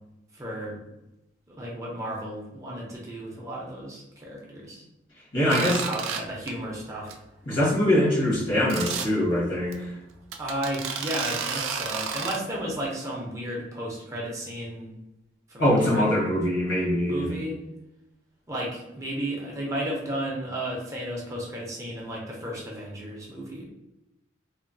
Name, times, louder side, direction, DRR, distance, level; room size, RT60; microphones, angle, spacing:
voice 1, 0.3-0.8 1.5-4.8 5.4-7.2 10.4-14.9 15.5-16.3 17.1-17.6 18.5-23.6, right 1 dB, 15° right, -3 dB, 0.5 m, -33 dB
voice 2, 5.3-5.8 7.5-9.9 15.6-17.2, left 1 dB, 75° left, -5 dB, 1.2 m, -23 dB
sound 1, 5.5-6.2 6.5-6.7 7.1-7.2 7.5-7.6 8.7-9.1 9.7-9.8 10.3-12.4, right 6 dB, 90° right, 0.3 m, -31 dB
2.9 x 2.0 x 2.5 m, 0.93 s
head